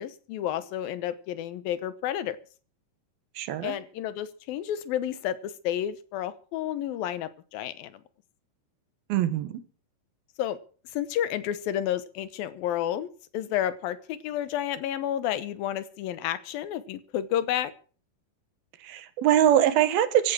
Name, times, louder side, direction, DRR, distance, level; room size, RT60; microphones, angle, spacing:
voice 1, 0.0-2.4 3.6-8.0 10.4-10.6 10.9-17.7, left 11 dB, 85° left, 2.8 m, -31 dB
voice 2, 3.4-3.8 9.1-9.6 18.8-20.3, right 11 dB, 85° right, 3.2 m, -23 dB
16.0 x 11.5 x 6.2 m
omnidirectional pair, 4.1 m